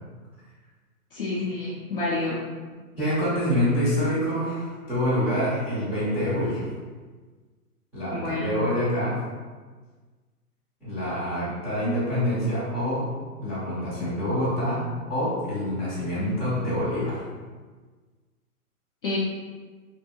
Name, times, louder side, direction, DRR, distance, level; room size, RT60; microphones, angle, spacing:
voice 1, 1.1-2.4 8.1-8.5 11.9-12.0 19.0-19.2, left 2 dB, 40° left, -6 dB, 0.4 m, -28 dB
voice 2, 3.0-6.7 7.9-9.2 10.8-13.1 13.4-14.8 15.1-17.2, equal, 5° right, -15 dB, 0.6 m, -26 dB
2.7 x 2.5 x 2.7 m, 1.4 s
hypercardioid pair, 145°, 45 cm